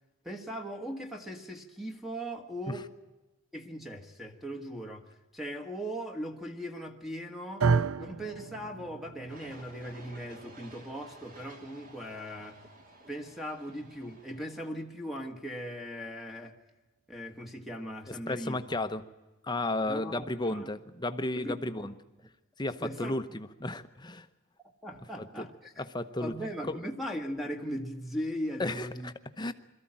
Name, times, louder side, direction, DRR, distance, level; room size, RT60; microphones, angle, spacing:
voice 1, 0.2-2.9 3.5-7.7 8.0-12.6 13.1-16.6 17.1-18.6 19.9-20.7 21.3-21.9 22.8-23.2 24.8-25.9 26.2-29.1, equal, ahead, 1.3 m, -39 dB
sound 1, 7.6-15.8, right 5 dB, 80° right, 0.6 m, -35 dB
sound 2, 9.3-14.7, right 2 dB, 40° right, 2.6 m, -54 dB
voice 2, 18.1-19.0 19.4-21.9 22.6-24.3 25.2-25.5 25.8-26.3 26.7-26.8 28.6-29.5, left 2 dB, 20° left, 0.9 m, -33 dB
22.5 x 14.0 x 8.8 m
head